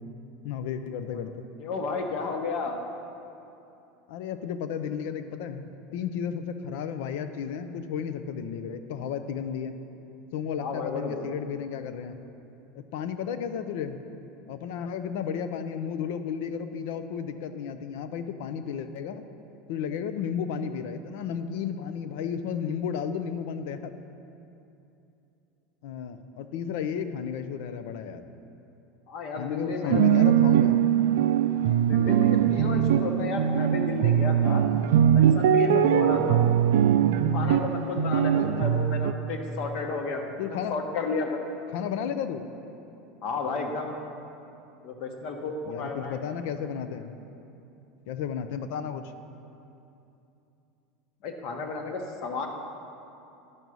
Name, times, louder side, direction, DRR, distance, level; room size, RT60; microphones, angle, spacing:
voice 1, 0.4-1.5 4.1-9.7 10.3-12.2 12.7-14.0 14.5-19.2 19.7-23.9 25.8-28.2 29.4-30.8 35.9-36.3 38.0-38.5 40.4-40.7 41.7-42.5 45.6-47.1 48.1-49.0, left 7 dB, 70° left, 10 dB, 0.5 m, -33 dB
voice 2, 1.6-2.8 10.6-11.3 29.1-30.0 31.8-34.7 35.1-36.4 37.3-40.4 40.7-41.4 43.2-44.0 44.8-46.2 51.2-52.5, left 4 dB, 45° left, 4 dB, 1.0 m, -32 dB
sound 1, 29.9-39.1, right 9 dB, 85° right, 0.3 m, -21 dB
10.5 x 5.4 x 6.2 m, 2.8 s
supercardioid pair, 165°, 0 cm